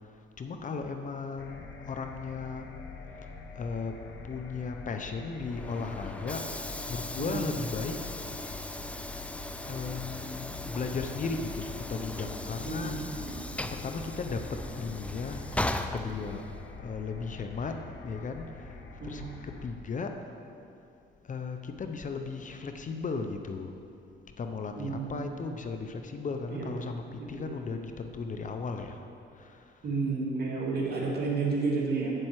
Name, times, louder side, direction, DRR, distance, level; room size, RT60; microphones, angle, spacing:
voice 1, 0.0-2.7 3.2-3.3 3.5-4.0 4.2-8.3 9.7-13.3 13.7-20.2 21.2-23.7 24.4-29.0 29.3-29.9, left 4 dB, 40° left, 5 dB, 0.7 m, -36 dB
sound 1, 1.4-19.7, left 4 dB, 70° left, 0.9 m, -45 dB
Train / Sliding door, 5.3-16.8, left 1 dB, 5° left, 0.4 m, -38 dB
voice 2, 12.6-13.6 19.0-19.3 24.8-25.4 26.5-26.7 27.3-27.6 29.8-32.1, right 4 dB, 55° right, -3 dB, 2.2 m, -31 dB
8.6 x 7.6 x 4.8 m, 2.6 s
cardioid pair, 90°, 20 cm